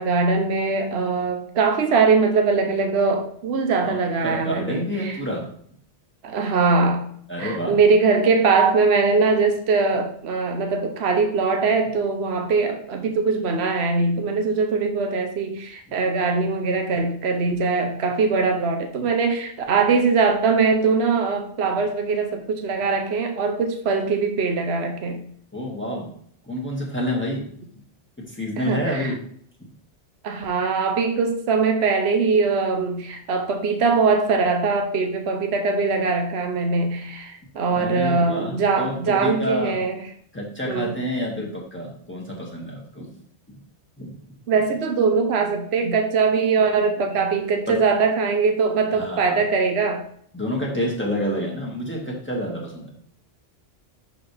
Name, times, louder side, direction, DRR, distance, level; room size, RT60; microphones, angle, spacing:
voice 1, 0.0-5.2 6.2-7.1 7.4-25.2 28.6-29.1 30.2-40.0 40.7-40.9 44.5-50.0, right 4 dB, 65° right, 5 dB, 1.1 m, -21 dB
voice 2, 3.8-5.5 7.3-7.8 25.5-26.1 26.5-27.5 28.3-29.2 37.7-39.8 40.3-43.1 43.5-43.6 44.0-44.1 47.7-47.8 48.9-49.4 50.3-52.9, equal, 10° left, -4 dB, 2.0 m, -28 dB
11.0 x 4.2 x 3.4 m, 0.64 s
omnidirectional pair, 1.2 m